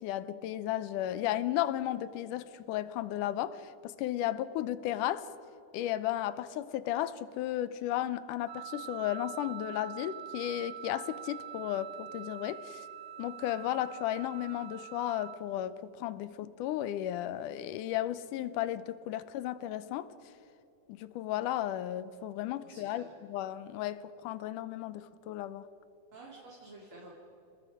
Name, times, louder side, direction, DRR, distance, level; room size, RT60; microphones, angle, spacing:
voice 1, 0.0-5.3 5.7-12.9 13.2-20.1 20.9-25.7, left 13 dB, 90° left, 2.3 m, -34 dB
Wind instrument woodwind instrument, 8.5-15.4, right 10 dB, 70° right, 2.2 m, -45 dB
voice 2, 22.6-23.1 26.1-27.1, right 2 dB, 45° right, 3.5 m, -51 dB
29.0 x 19.5 x 4.9 m
omnidirectional pair, 3.6 m